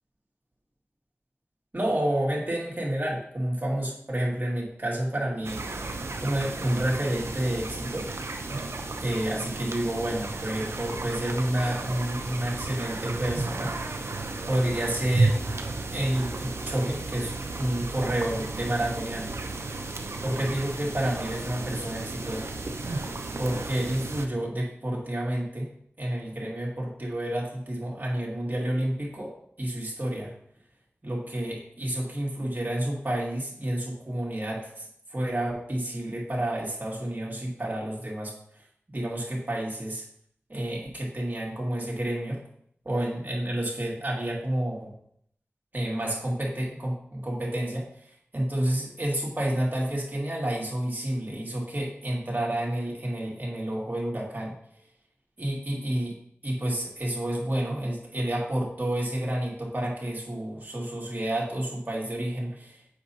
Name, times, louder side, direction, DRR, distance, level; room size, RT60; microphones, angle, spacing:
voice 1, 1.7-5.6 6.2-8.1 9.0-14.0 14.5-15.4 15.9-17.3 17.6-19.3 20.2-22.5 23.4-25.7 26.0-29.3 29.6-30.3 31.0-38.3 38.9-40.0 40.5-42.4 42.8-44.9 45.7-47.9 48.3-54.5 55.4-56.2 56.4-62.8, right 1 dB, 40° right, -4 dB, 2.4 m, -29 dB
sound 1, 5.4-24.3, right 3 dB, 75° right, 0.6 m, -33 dB
7.6 x 5.5 x 2.8 m, 0.67 s
wide cardioid pair, 40°, 5 cm